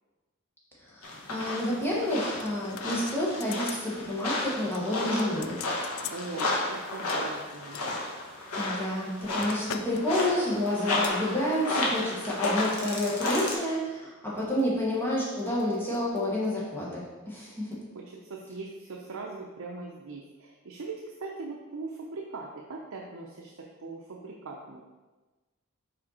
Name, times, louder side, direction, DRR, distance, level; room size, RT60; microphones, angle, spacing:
voice 1, 0.8-5.7 8.5-17.7, left 1 dB, 10° left, -6 dB, 1.3 m, -29 dB
sound 1, 1.0-13.5, left 2 dB, 85° left, 1.2 m, -32 dB
sound 2, 2.4-3.9 4.2-4.5 4.7-6.5 7.1-8.0 8.7-10.0 10.3-10.5 11.0-11.2 11.8-12.1 12.4-12.5, left 8 dB, 65° left, 0.3 m, -42 dB
voice 2, 6.1-7.8 17.9-24.8, right 3 dB, 70° right, -2 dB, 0.6 m, -40 dB
5.1 x 4.4 x 4.2 m, 1.2 s
head